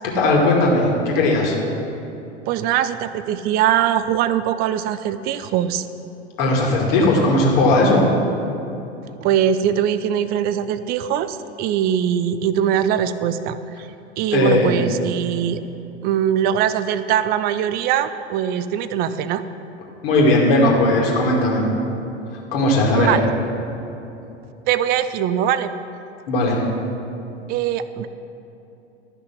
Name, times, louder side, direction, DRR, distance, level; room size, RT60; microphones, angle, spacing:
voice 1, 0.2-1.5 6.4-8.0 14.3-14.7 20.0-21.6 22.5-23.1 26.3-26.6, left 2 dB, 60° left, -2 dB, 2.3 m, -17 dB
voice 2, 2.5-5.9 9.2-13.9 14.2-15.6 16.0-19.4 22.9-23.2 24.7-25.7 27.5-28.1, right 10 dB, 30° right, 12 dB, 0.4 m, -21 dB
12.5 x 5.9 x 5.9 m, 2.9 s
figure-of-eight pair, 85°, 34 cm